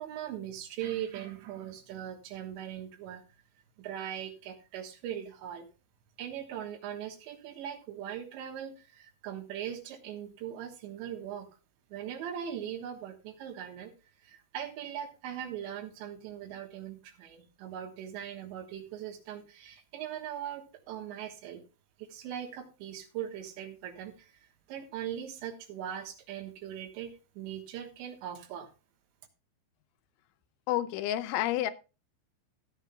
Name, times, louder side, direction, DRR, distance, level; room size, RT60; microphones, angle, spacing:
voice 1, 0.0-3.2 3.8-5.7 6.2-11.5 11.9-13.9 14.2-21.6 22.0-28.7, right 10 dB, 75° right, 5 dB, 3.4 m, -40 dB
voice 2, 30.7-31.7, left 13 dB, 85° left, 12 dB, 3.0 m, -29 dB
15.0 x 10.5 x 2.3 m, 0.31 s
omnidirectional pair, 5.5 m